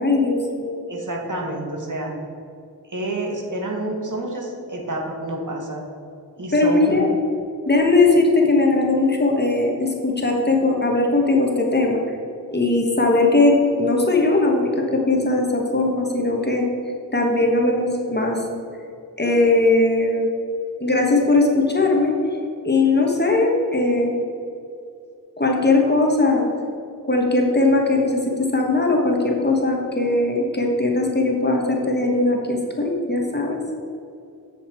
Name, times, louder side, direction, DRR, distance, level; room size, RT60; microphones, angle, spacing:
voice 1, 0.0-0.8 6.5-7.1 7.7-12.0 12.5-16.7 17.1-18.4 19.2-20.3 20.8-22.1 22.6-24.3 25.4-26.5 27.1-33.6, left 2 dB, 25° left, 0 dB, 1.3 m, -19 dB
voice 2, 0.9-2.2 2.9-5.8 6.4-7.1, right 1 dB, 55° right, -1 dB, 1.5 m, -28 dB
7.9 x 6.5 x 4.4 m, 2.6 s
wide cardioid pair, 70°, 38 cm